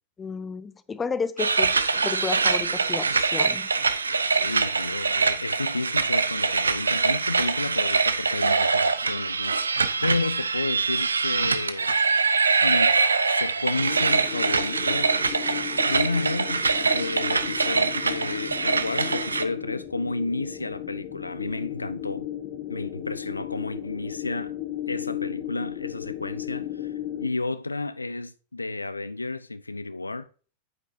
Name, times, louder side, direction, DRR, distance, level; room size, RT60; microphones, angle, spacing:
voice 1, 0.2-1.8 2.0-3.7, left 5 dB, 15° left, 0.7 m, -32 dB
sound 1, 1.4-19.4, right 4 dB, 75° right, 0.6 m, -24 dB
voice 2, 4.3-12.3 12.6-22.3 22.7-24.5 24.9-30.3, left 3 dB, 80° left, 0.4 m, -32 dB
sound 2, 13.8-27.3, left 12 dB, 45° left, 1.3 m, -35 dB
9.2 x 8.1 x 2.7 m
figure-of-eight pair, 90°, 0 cm